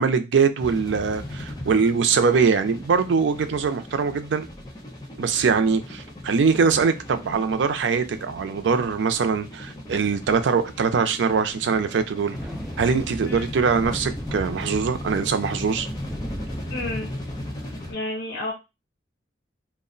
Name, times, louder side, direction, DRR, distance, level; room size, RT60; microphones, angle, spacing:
voice 1, 0.0-4.5 5.2-12.4 12.8-15.9, right 5 dB, 85° right, 0.4 m, -22 dB
sound 1, 0.6-17.9, left 1 dB, 20° left, 0.7 m, -37 dB
Thunder, 12.3-17.4, equal, ahead, 0.3 m, -37 dB
voice 2, 16.7-17.1 17.9-18.5, left 2 dB, 75° left, 0.7 m, -31 dB
2.3 x 2.1 x 3.7 m
head